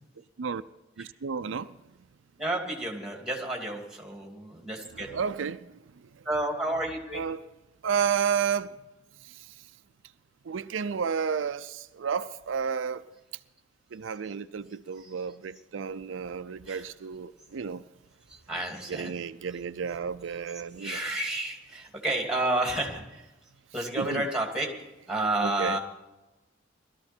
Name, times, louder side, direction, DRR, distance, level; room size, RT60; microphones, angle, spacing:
voice 1, 1.0-1.7 4.9-5.6 7.1-7.4 7.8-8.8 10.5-13.0 13.9-17.8 18.9-21.0 24.0-24.2 25.4-25.8, right 6 dB, 80° right, 0.5 m, -31 dB
voice 2, 2.4-5.1 6.2-7.2 15.0-15.1 16.7-16.9 18.3-19.1 20.8-23.3 23.7-24.7 25.1-25.8, right 2 dB, 5° right, 2.6 m, -31 dB
19.0 x 13.5 x 4.4 m
head